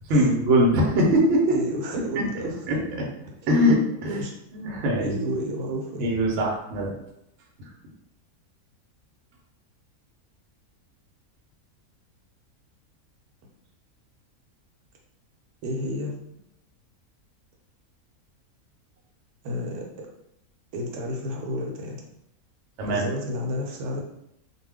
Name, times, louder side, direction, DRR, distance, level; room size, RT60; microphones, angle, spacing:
voice 1, 0.1-1.5 2.1-2.2 2.7-3.1 3.5-4.2 4.5-5.1 6.0-6.9 22.8-23.0, equal, 60° right, -1 dB, 0.9 m, -21 dB
voice 2, 1.4-2.7 4.0-4.3 5.0-6.1 15.6-16.1 19.4-20.1 20.7-22.0 22.9-24.0, equal, 85° right, -1 dB, 1.1 m, -31 dB
2.4 x 2.3 x 3.4 m, 0.80 s
omnidirectional pair, 1.6 m